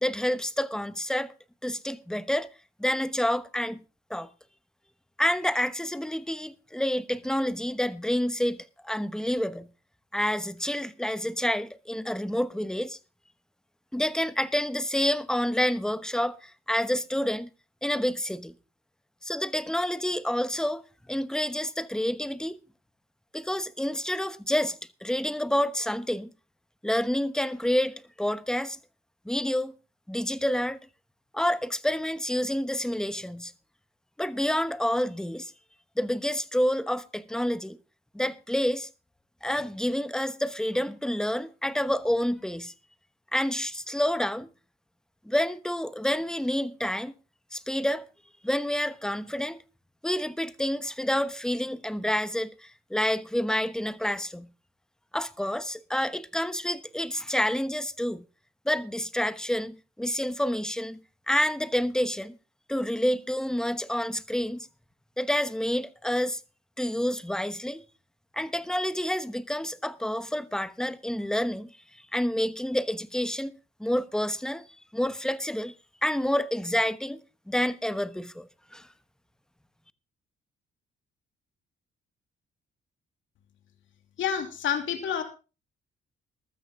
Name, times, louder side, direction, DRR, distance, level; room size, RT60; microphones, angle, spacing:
voice 1, 0.0-1.3 1.6-2.5 2.8-3.8 4.1-4.3 5.2-9.7 10.1-13.0 13.9-17.5 17.8-18.5 19.2-20.8 21.1-22.6 23.3-26.3 26.8-28.8 29.2-29.7 30.1-30.8 31.3-33.5 34.2-35.5 36.0-37.8 38.1-38.9 39.4-42.7 43.3-44.5 45.2-47.1 47.5-48.1 48.4-49.6 50.0-54.5 55.1-58.2 58.6-61.0 61.3-62.4 62.7-64.7 65.2-66.4 66.8-67.8 68.3-73.5 73.8-74.6 74.9-75.7 76.0-77.2 77.5-78.9, left 1 dB, 5° left, 1.0 m, -28 dB
voice 2, 84.2-85.2, left 8 dB, 75° left, 2.7 m, -28 dB
14.5 x 13.0 x 3.7 m
cardioid pair, 90°, 20 cm